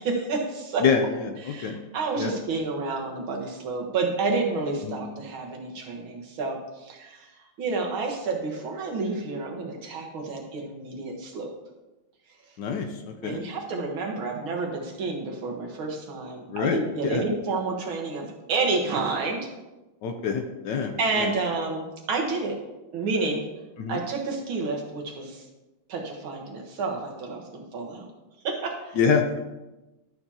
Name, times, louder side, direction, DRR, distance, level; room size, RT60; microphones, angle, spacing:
voice 1, 0.0-0.9 1.4-7.3 7.6-11.5 13.2-19.5 21.0-22.6 22.9-23.5 23.9-25.4 25.9-28.0 28.4-29.0, right 3 dB, 75° right, 1 dB, 2.1 m, -29 dB
voice 2, 0.8-1.8 2.2-2.3 4.8-5.0 12.6-13.4 16.5-17.2 20.0-21.3 23.8-24.0 29.0-29.4, left 6 dB, 70° left, 5 dB, 1.2 m, -26 dB
12.0 x 6.8 x 2.8 m, 1.0 s
omnidirectional pair, 2.3 m